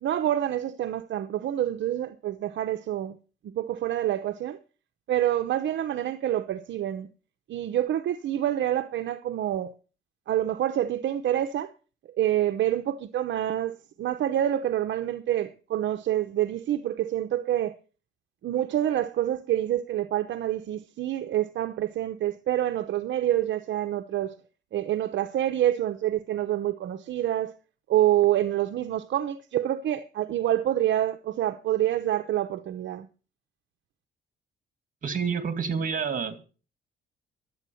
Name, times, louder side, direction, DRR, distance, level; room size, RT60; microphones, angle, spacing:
voice 1, 0.0-3.2 3.4-4.6 5.1-7.1 7.5-9.7 10.3-11.7 12.2-17.7 18.4-24.3 24.7-27.5 27.9-33.1, right 12 dB, 70° right, 0.8 m, -27 dB
voice 2, 35.0-36.4, right 6 dB, 45° right, 2.4 m, -28 dB
11.5 x 8.5 x 7.0 m
cardioid pair, 90°, 20 cm